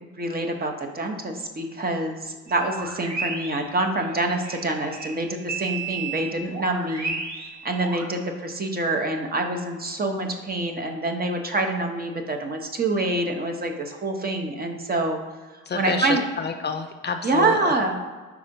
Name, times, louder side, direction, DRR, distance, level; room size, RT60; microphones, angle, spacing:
voice 1, 0.2-7.1 7.6-15.2 15.7-16.2 17.2-18.0, right 2 dB, 30° right, 4 dB, 0.8 m, -26 dB
sound 1, 2.5-8.1, right 4 dB, 70° right, 1.1 m, -33 dB
voice 2, 15.7-17.8, left 6 dB, 35° left, 5 dB, 0.4 m, -29 dB
4.8 x 4.2 x 5.2 m, 1.4 s
cardioid pair, 90°, 30 cm